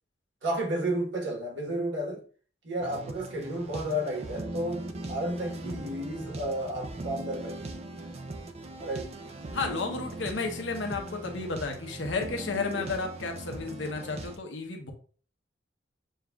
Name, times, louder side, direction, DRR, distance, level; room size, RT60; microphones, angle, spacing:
voice 1, 0.4-2.2 2.6-7.8 8.8-9.1 12.7-12.9, right 1 dB, 75° right, 1.3 m, -32 dB
sound 1, 2.8-14.4, right 2 dB, 35° right, 0.4 m, -40 dB
voice 2, 9.5-14.9, left 4 dB, 85° left, 0.8 m, -33 dB
6.5 x 2.4 x 2.3 m
head